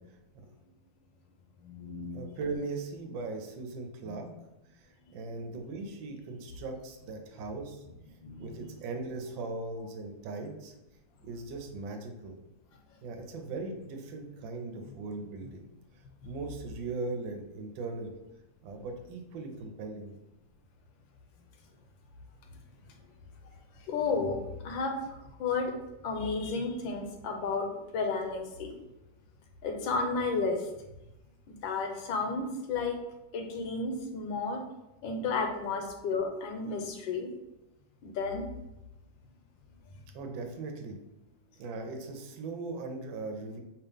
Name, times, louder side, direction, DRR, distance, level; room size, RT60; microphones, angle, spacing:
voice 1, 1.6-2.3 4.0-4.2 5.1-5.2 8.2-8.9 14.9-15.0 16.2-16.3 23.4-25.7 26.0-28.7 29.6-30.9 31.5-33.0 33.3-34.6 35.0-37.3 38.0-38.5, left 4 dB, 80° left, 3 dB, 1.4 m, -33 dB
voice 2, 2.1-4.3 4.7-7.8 8.4-10.7 11.2-12.3 13.0-15.6 16.2-18.1 18.6-20.1 40.1-41.0 41.6-43.6, right 3 dB, 75° right, 4 dB, 1.4 m, -39 dB
5.1 x 2.9 x 3.5 m, 0.94 s
omnidirectional pair, 2.1 m